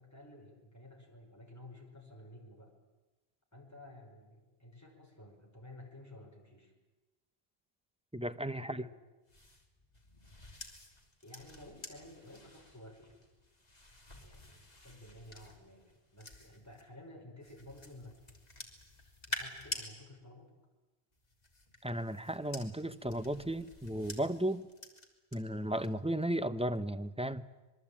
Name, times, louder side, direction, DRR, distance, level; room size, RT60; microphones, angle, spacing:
voice 1, 0.0-2.7 3.5-6.7 8.6-8.9 11.2-13.2 14.2-18.2 19.3-20.5, left 1 dB, 15° left, 1 dB, 5.3 m, -53 dB
voice 2, 8.1-8.8 21.8-24.6 25.3-27.4, right 1 dB, 5° right, 10 dB, 0.7 m, -35 dB
sound 1, 9.3-16.8 17.4-19.9 21.1-25.4 25.7-26.1, left 1 dB, 40° left, 3.1 m, -49 dB
26.0 x 22.0 x 8.7 m, 1.1 s
omnidirectional pair, 1.0 m